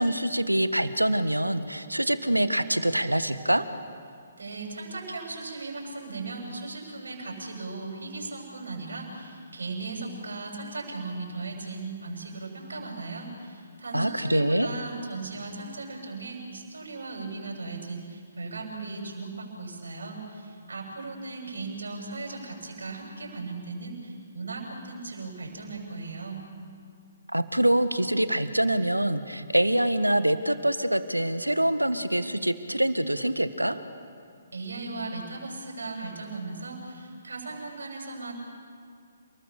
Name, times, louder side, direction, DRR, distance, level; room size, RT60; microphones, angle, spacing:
voice 1, 0.0-3.6 13.9-14.7 27.3-33.8, right 1 dB, 85° right, 12 dB, 1.4 m, -25 dB
voice 2, 4.4-26.4 34.5-38.3, right 3 dB, 65° right, 1 dB, 7.2 m, -37 dB
29.0 x 20.5 x 7.0 m, 2.3 s
figure-of-eight pair, 130°, 0 cm